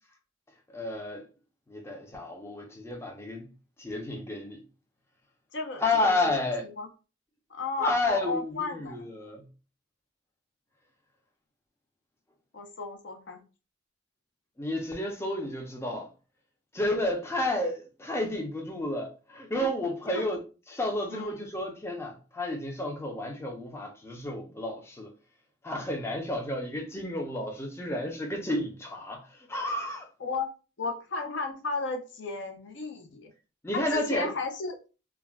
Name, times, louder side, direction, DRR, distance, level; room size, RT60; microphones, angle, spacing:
voice 1, 0.7-1.3 1.7-3.5 3.8-4.6 5.8-6.6 7.8-9.4 14.6-16.1 16.7-20.4 20.7-25.1 25.6-29.2 29.5-30.1 33.6-34.3, left 1 dB, 15° left, 0.4 m, -31 dB
voice 2, 5.5-6.9 7.5-9.0 12.5-13.4 19.6-19.7 20.1-20.2 21.1-21.4 30.2-30.5 30.8-33.3 33.7-34.8, left 3 dB, 65° left, 0.6 m, -34 dB
2.3 x 2.1 x 3.3 m
head